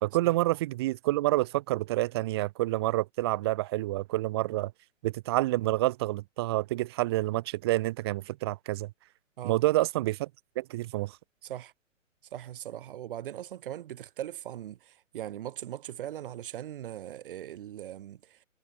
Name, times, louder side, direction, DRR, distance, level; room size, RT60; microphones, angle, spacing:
voice 1, 0.0-4.7 5.0-8.9 9.4-10.3 10.6-11.1, right 17 dB, 20° right, 0.7 m, -28 dB
voice 2, 11.4-11.7 12.3-18.4, right 11 dB, 40° right, 4.2 m, -40 dB
figure-of-eight pair, 125°, 39 cm